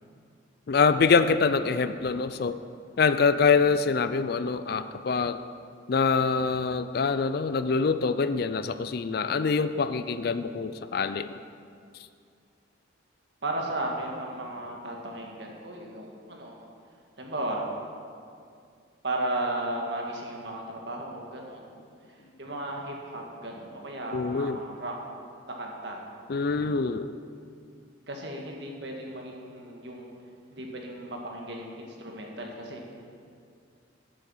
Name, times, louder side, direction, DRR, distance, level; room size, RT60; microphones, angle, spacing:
voice 1, 0.7-2.6 3.0-5.4 5.9-11.3 24.1-24.6 26.3-27.2, left 5 dB, 50° left, 12 dB, 0.4 m, -25 dB
voice 2, 9.2-9.6 13.4-16.7 17.2-17.6 19.0-21.6 22.4-24.9 25.5-26.1 28.1-30.1 30.5-32.8, right 1 dB, 60° right, 0 dB, 1.7 m, -35 dB
11.5 x 8.2 x 5.6 m, 2.3 s
head